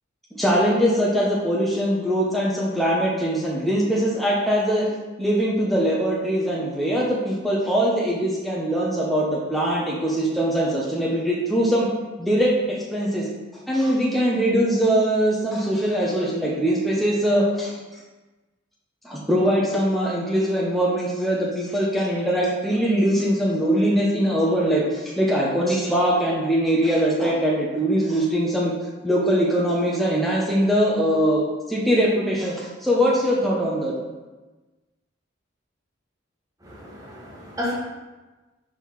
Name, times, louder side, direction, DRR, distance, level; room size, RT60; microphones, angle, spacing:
voice 1, 0.3-4.9 5.2-11.9 12.2-13.3 13.7-17.7 19.0-28.7 29.0-34.0, equal, ahead, -5 dB, 0.9 m, -22 dB
voice 2, 36.6-37.7, left 1 dB, 20° right, -4 dB, 1.5 m, -32 dB
5.5 x 4.7 x 5.6 m, 1.2 s
head